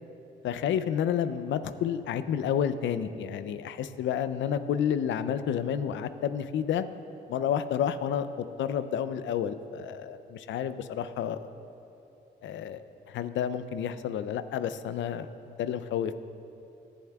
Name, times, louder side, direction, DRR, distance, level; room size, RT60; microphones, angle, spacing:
voice 1, 0.4-6.8 7.3-11.5 12.4-12.8 13.1-15.3 15.6-16.1, left 9 dB, 70° left, 12 dB, 0.5 m, -30 dB
17.0 x 10.5 x 2.3 m, 2.7 s
cardioid pair, 90°, 20 cm